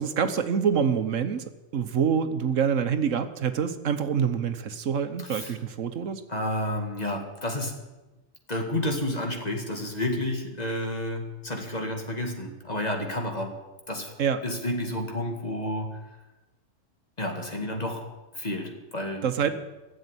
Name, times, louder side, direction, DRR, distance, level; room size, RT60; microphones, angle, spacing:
voice 1, 0.0-1.4 1.7-6.2 14.2-14.4 19.2-19.5, right 7 dB, 75° right, 9 dB, 1.3 m, -26 dB
voice 2, 5.2-5.5 6.3-7.8 8.5-13.6 13.9-14.1 14.4-16.0 17.2-18.1 18.3-19.5, left 1 dB, 30° left, 2 dB, 2.3 m, -30 dB
15.0 x 7.9 x 9.8 m, 1.1 s
omnidirectional pair, 1.3 m